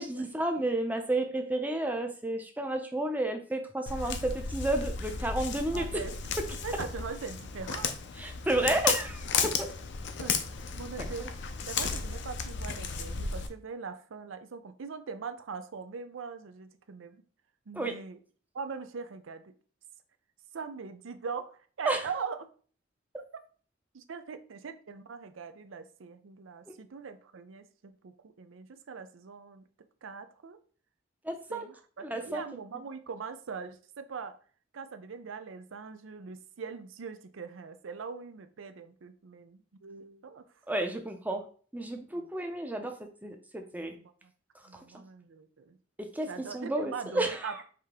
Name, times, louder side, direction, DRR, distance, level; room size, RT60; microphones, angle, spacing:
voice 1, 0.0-5.9 8.2-9.7 11.0-11.3 17.7-17.9 21.8-22.0 26.7-26.8 31.2-31.7 32.0-32.4 40.7-41.5 41.7-43.9 44.7-44.8 46.0-47.6, right 1 dB, 10° right, 0.6 m, -32 dB
Walk footsteps, 3.9-13.5, left 5 dB, 65° left, 0.5 m, -34 dB
voice 2, 5.7-6.3 6.6-7.9 10.2-10.4 10.8-11.3 11.7-17.2 17.7-18.2 18.5-19.5 20.5-22.5 23.9-29.7 30.0-30.6 31.5-34.4 34.7-40.5 42.1-42.3 44.0-44.3 44.7-45.8 46.3-47.6, right 5 dB, 85° right, 0.5 m, -41 dB
5.0 x 2.8 x 3.6 m
head